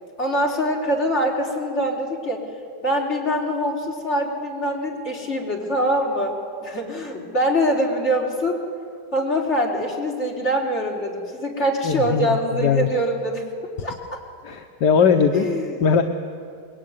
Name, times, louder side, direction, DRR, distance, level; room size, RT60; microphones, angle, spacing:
voice 1, 0.2-2.5 2.8-8.6 9.1-13.4 13.8-14.2 15.3-15.8, equal, 40° left, -1 dB, 4.4 m, -24 dB
voice 2, 11.8-12.9 14.4-15.5 15.8-16.0, left 6 dB, 70° left, 5 dB, 1.7 m, -19 dB
25.5 x 22.0 x 9.6 m, 2.2 s
omnidirectional pair, 1.9 m